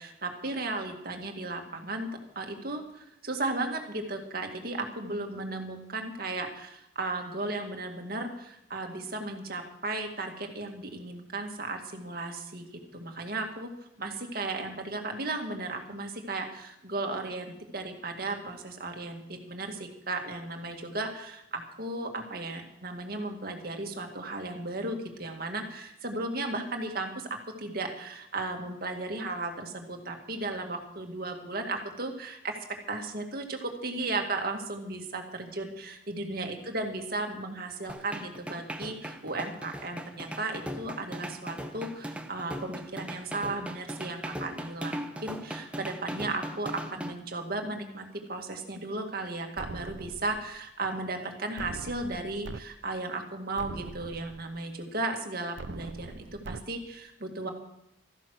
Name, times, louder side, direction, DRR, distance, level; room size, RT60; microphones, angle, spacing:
voice 1, 0.0-2.1 2.4-27.3 27.6-32.6 32.9-57.5, right 2 dB, 55° right, 3 dB, 2.1 m, -35 dB
sound 1, 37.9-47.1, equal, 5° right, 1.0 m, -39 dB
sound 2, 49.6-50.6 51.6-52.6 53.1-53.2 53.6-54.6 55.6-56.6, right 4 dB, 75° right, 0.5 m, -42 dB
14.0 x 11.5 x 6.3 m, 0.80 s
head